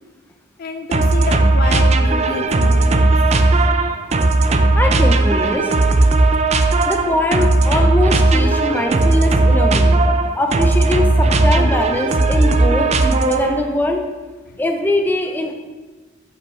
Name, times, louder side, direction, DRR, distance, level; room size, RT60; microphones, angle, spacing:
voice 1, 0.6-3.1, left 3 dB, 50° left, 8 dB, 0.4 m, -28 dB
sound 1, 0.9-13.7, right 2 dB, 35° right, 0.4 m, -15 dB
voice 2, 4.7-5.7 6.9-9.9 10.4-14.0 14.6-15.5, left 1 dB, 10° left, 3 dB, 0.6 m, -21 dB
9.0 x 5.7 x 3.2 m, 1.3 s
head